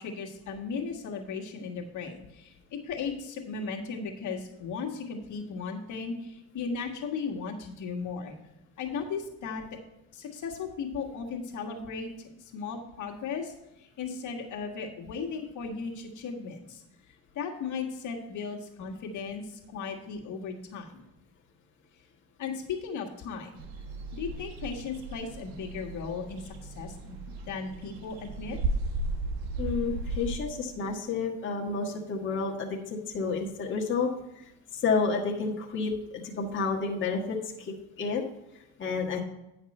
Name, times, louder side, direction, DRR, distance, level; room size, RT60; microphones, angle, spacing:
voice 1, 0.0-8.3 8.8-9.6 10.1-12.1 12.4-13.5 13.8-16.8 17.3-21.0 22.4-23.6 24.1-27.2 27.4-28.6, left 5 dB, 60° left, 1 dB, 1.7 m, -36 dB
sound 1, 23.6-30.4, right 2 dB, 85° right, 1.2 m, -35 dB
voice 2, 29.6-34.1 34.7-38.3 38.8-39.2, left 4 dB, 35° left, -2 dB, 1.4 m, -30 dB
9.8 x 5.9 x 4.3 m, 0.92 s
supercardioid pair, 95°, 33 cm